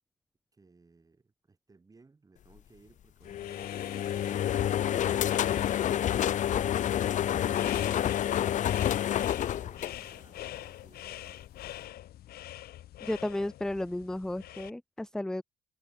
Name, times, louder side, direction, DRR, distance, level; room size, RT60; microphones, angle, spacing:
voice 1, 0.5-5.4 8.0-11.5, right 3 dB, 20° right, 7.4 m, -60 dB
sound 1, 3.2-14.7, left 13 dB, 65° left, 1.3 m, -45 dB
sound 2, 3.3-10.6, left 11 dB, 45° left, 0.6 m, -28 dB
voice 2, 13.0-15.4, left 1 dB, 5° left, 0.4 m, -33 dB
cardioid pair, 110°, 17 cm